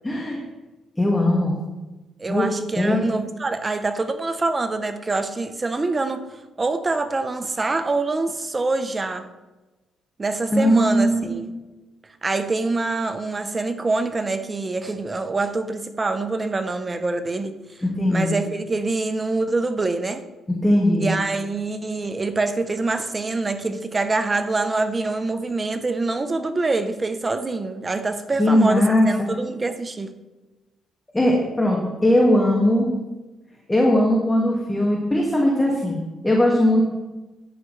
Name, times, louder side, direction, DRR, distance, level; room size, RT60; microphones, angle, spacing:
voice 1, 0.0-0.4 1.0-1.5 2.3-2.5 2.8-3.0 10.5-11.2 17.8-18.3 20.6-21.1 28.4-29.1 31.1-32.9 33.7-36.0 36.2-36.8, left 1 dB, 15° left, -2 dB, 2.1 m, -19 dB
voice 2, 2.2-6.3 6.6-9.3 10.2-11.5 12.2-17.5 18.1-20.2 21.0-30.1, right 3 dB, 25° right, 9 dB, 0.8 m, -25 dB
13.0 x 9.8 x 3.3 m, 1.1 s
cardioid pair, 90°, 0 cm